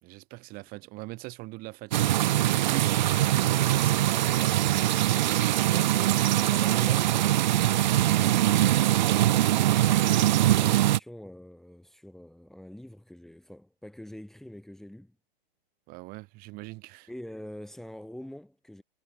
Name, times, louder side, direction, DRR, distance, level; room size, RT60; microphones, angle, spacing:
voice 1, 0.0-2.2 2.6-4.5 9.7-10.0 15.9-17.1, right 23 dB, 30° right, 4.5 m, -42 dB
sound 1, 1.9-11.0, right 13 dB, 50° right, 0.5 m, -23 dB
voice 2, 6.1-7.2 7.4-8.7 10.6-15.1 17.1-18.8, left 1 dB, ahead, 3.4 m, -45 dB
hypercardioid pair, 135°, 29 cm